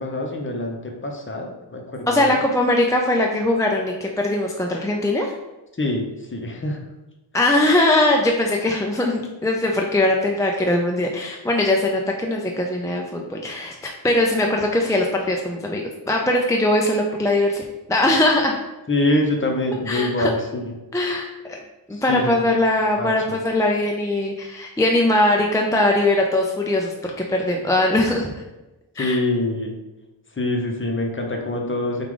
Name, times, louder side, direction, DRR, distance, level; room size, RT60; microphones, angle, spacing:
voice 1, 0.0-2.3 5.8-6.9 18.9-20.7 21.9-22.3 23.0-23.4 29.0-29.8 30.4-32.0, left 1 dB, 25° left, 1 dB, 0.8 m, -25 dB
voice 2, 2.1-5.3 7.3-17.6 17.9-18.5 19.9-20.3 20.9-21.6 21.9-28.3 29.0-29.2, left 1 dB, 10° left, 0 dB, 0.3 m, -21 dB
4.6 x 2.4 x 3.7 m, 1.0 s
cardioid pair, 65°, 47 cm